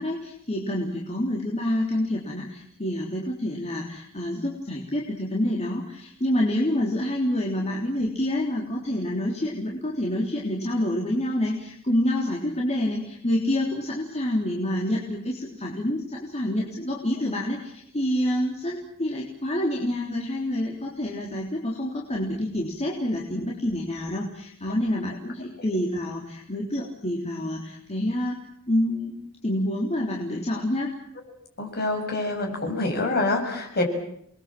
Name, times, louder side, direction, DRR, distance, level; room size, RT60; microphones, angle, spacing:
voice 1, 0.0-28.4 28.7-29.2 29.4-30.9, left 1 dB, 30° left, -2 dB, 3.5 m, -27 dB
voice 2, 31.6-33.8, left 2 dB, 50° left, 2 dB, 6.9 m, -26 dB
29.0 x 21.5 x 7.6 m, 0.72 s
head